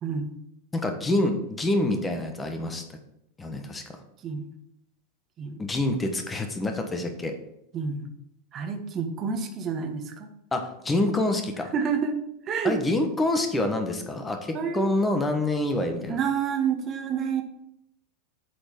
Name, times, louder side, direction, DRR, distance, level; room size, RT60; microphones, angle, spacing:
voice 1, 0.0-0.4 4.2-4.5 5.4-5.6 7.7-8.1 8.5-10.3 11.7-12.2 12.5-12.8 14.5-14.9 16.1-17.4, right 6 dB, 35° right, 5 dB, 1.3 m, -28 dB
voice 2, 0.7-2.8 3.4-4.0 5.6-7.3 10.5-11.7 12.6-16.2, left 2 dB, 15° left, 5 dB, 1.3 m, -26 dB
7.7 x 4.4 x 6.0 m, 0.79 s
figure-of-eight pair, 90°, 0 cm